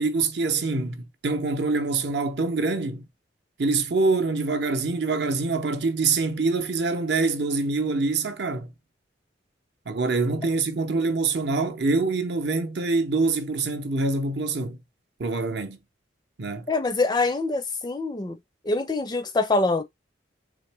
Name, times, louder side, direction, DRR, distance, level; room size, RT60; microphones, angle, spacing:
voice 1, 0.0-3.0 3.6-8.7 9.9-14.8 15.2-15.8 16.4-16.7, right 3 dB, 60° right, 0.6 m, -25 dB
voice 2, 16.7-18.4 18.6-19.8, left 3 dB, 20° left, 0.4 m, -24 dB
3.8 x 2.9 x 3.3 m
head